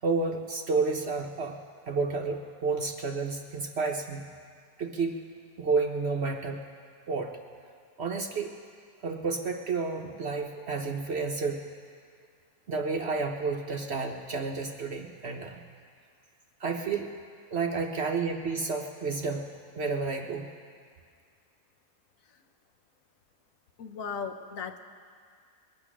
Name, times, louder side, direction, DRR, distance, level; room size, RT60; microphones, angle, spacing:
voice 1, 0.0-1.6 1.9-4.3 4.8-5.2 5.6-6.6 7.1-7.3 8.0-8.5 9.0-11.6 12.7-15.6 16.6-17.1 17.5-19.5 19.7-20.5, right 4 dB, 50° right, 3 dB, 0.9 m, -30 dB
voice 2, 23.8-24.8, left 6 dB, 65° left, 6 dB, 1.1 m, -36 dB
22.0 x 8.7 x 6.1 m, 2.1 s
omnidirectional pair, 1.7 m